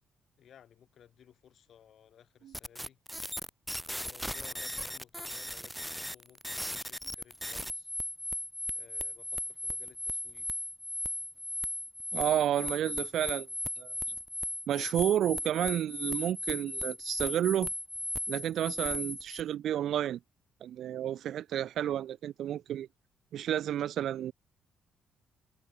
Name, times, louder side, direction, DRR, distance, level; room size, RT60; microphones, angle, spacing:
voice 1, 0.4-3.0 3.9-7.9 8.7-10.5, left 9 dB, 65° left, 3.1 m, -58 dB
sound 1, 2.5-19.4, equal, ahead, 0.4 m, -37 dB
voice 2, 12.1-13.5 13.8-13.9 14.7-17.7 18.3-20.2 20.6-22.9 23.3-24.3, right 11 dB, 70° right, 0.5 m, -31 dB
cardioid pair, 90°, 0 cm